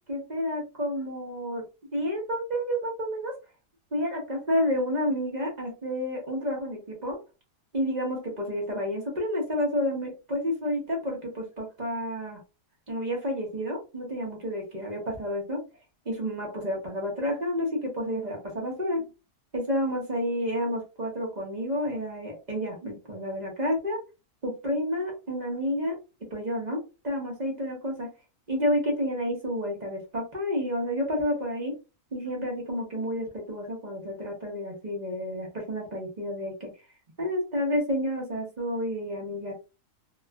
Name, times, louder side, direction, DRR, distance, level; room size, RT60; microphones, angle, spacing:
voice 1, 0.1-1.6 1.9-3.3 3.9-7.2 7.7-12.4 12.9-15.6 16.1-19.1 19.5-24.0 24.4-25.9 26.3-28.1 28.5-31.7 32.1-36.7 37.2-39.5, equal, 35° right, -1 dB, 0.7 m, -30 dB
3.0 x 2.4 x 2.2 m, 0.29 s
omnidirectional pair, 1.7 m